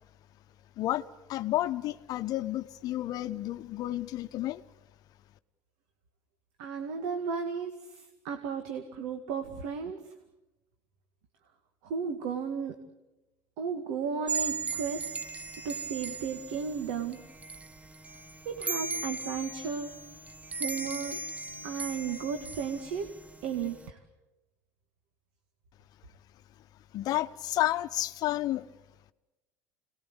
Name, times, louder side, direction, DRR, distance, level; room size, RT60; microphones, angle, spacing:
voice 1, 1.3-4.6 26.9-28.7, left 15 dB, 55° left, 11 dB, 1.0 m, -31 dB
voice 2, 6.6-10.0 11.8-12.8 13.6-15.1 15.6-17.2 18.5-20.0 20.5-21.2 21.6-23.1 23.4-24.0, right 6 dB, 80° right, 6 dB, 2.1 m, -34 dB
sound 1, 14.3-23.9, right 4 dB, 20° right, 1.2 m, -38 dB
26.0 x 19.5 x 8.1 m, 1.0 s
supercardioid pair, 105°, 8 cm